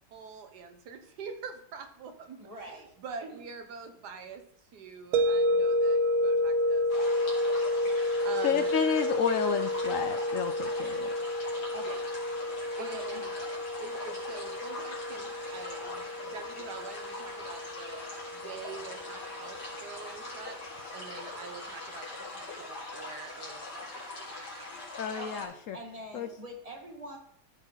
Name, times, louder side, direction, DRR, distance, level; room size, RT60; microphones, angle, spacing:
voice 1, 0.1-8.7 11.8-11.9 12.8-13.3 13.8-20.6 20.9-24.7, right 5 dB, 90° right, 7 dB, 1.6 m, -45 dB
voice 2, 2.4-2.9 3.2-3.4 11.7-12.0 12.8-13.2 25.2-27.2, right 1 dB, 20° right, 1 dB, 1.7 m, -44 dB
sound 1, 5.1-20.1, left 1 dB, 65° right, 0.9 m, -30 dB
sound 2, 6.9-25.5, left 2 dB, 90° left, 2.8 m, -42 dB
voice 3, 8.4-11.1 25.0-25.8 26.1-26.3, left 7 dB, 65° left, 8 dB, 0.8 m, -31 dB
13.5 x 4.7 x 4.0 m, 0.67 s
omnidirectional pair, 1.7 m